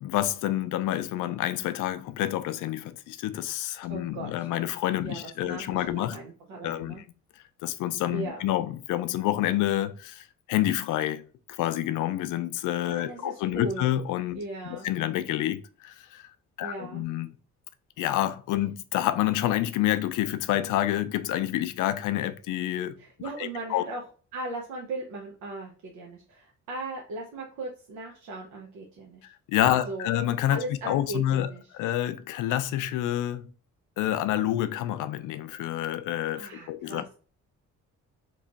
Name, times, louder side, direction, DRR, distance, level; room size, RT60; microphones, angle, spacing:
voice 1, 0.0-6.2 6.6-6.9 7.6-16.3 16.6-17.3 18.0-23.0 23.4-23.8 29.2-33.5 34.0-37.1, left 13 dB, 85° left, 0.5 m, -28 dB
voice 2, 3.9-4.5 5.0-7.0 8.1-8.5 12.9-13.9 14.4-14.9 16.6-17.0 23.0-24.0 24.3-29.3 29.6-30.1 30.5-31.7 36.3-37.1, right 2 dB, 90° right, 0.8 m, -38 dB
3.0 x 2.3 x 3.9 m
cardioid pair, 90°, 30 cm